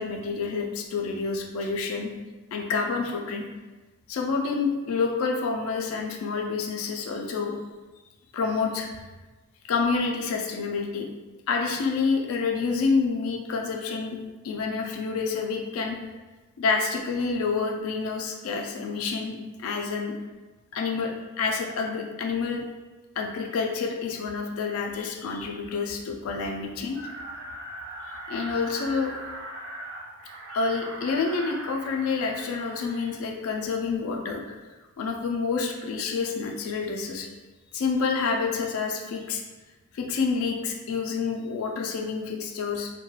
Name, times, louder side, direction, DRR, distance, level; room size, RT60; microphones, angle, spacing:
voice 1, 0.0-2.1 2.5-3.4 4.1-7.6 8.3-9.0 9.6-11.1 11.5-14.2 14.4-16.0 16.6-20.1 20.7-21.1 21.4-22.6 23.2-27.0 28.3-29.1 30.5-34.6 35.0-37.3 37.7-39.4 39.9-42.9, left 4 dB, 75° left, 2 dB, 0.3 m, -28 dB
sound 1, 26.9-33.2, right 1 dB, 55° right, 0.5 m, -40 dB
3.0 x 2.1 x 2.2 m, 1.2 s
head